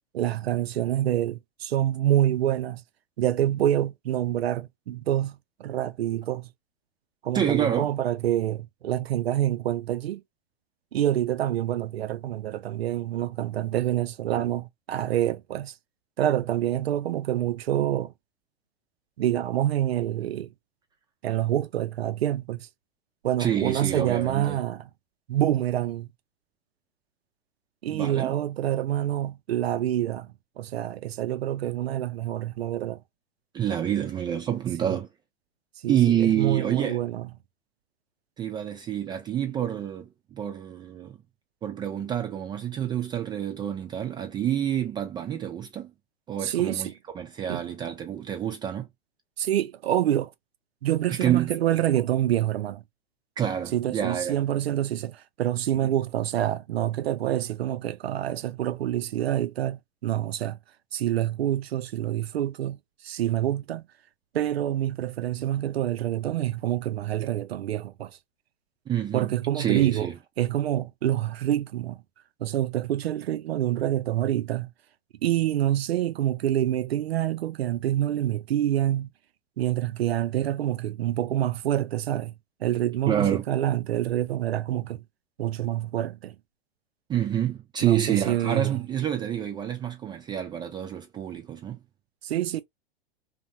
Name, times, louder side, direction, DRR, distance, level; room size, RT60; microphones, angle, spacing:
voice 1, 0.1-2.8 3.2-6.5 7.2-10.2 10.9-15.7 16.2-18.1 19.2-20.5 21.2-22.7 23.2-24.9 25.3-26.1 27.8-30.3 30.6-33.0 34.8-35.0 35.8-37.3 46.4-46.9 47.5-47.6 49.4-50.3 50.8-52.8 53.7-60.6 60.9-62.8 63.0-63.8 64.3-68.2 69.1-70.1 70.4-72.0 72.4-74.7 75.2-79.1 79.6-82.3 82.6-85.0 85.4-86.4 87.8-88.8 92.2-92.6, right 12 dB, 85° right, 0.5 m, -27 dB
voice 2, 7.3-7.9 23.4-24.6 27.9-28.3 33.5-35.1 35.9-37.0 38.4-41.2 41.6-45.9 46.3-46.9 47.1-48.9 51.1-51.5 53.4-54.4 68.9-70.1 83.1-83.4 87.1-91.8, right 10 dB, 15° right, 0.3 m, -28 dB
2.7 x 2.1 x 2.6 m
hypercardioid pair, 105°, 30 cm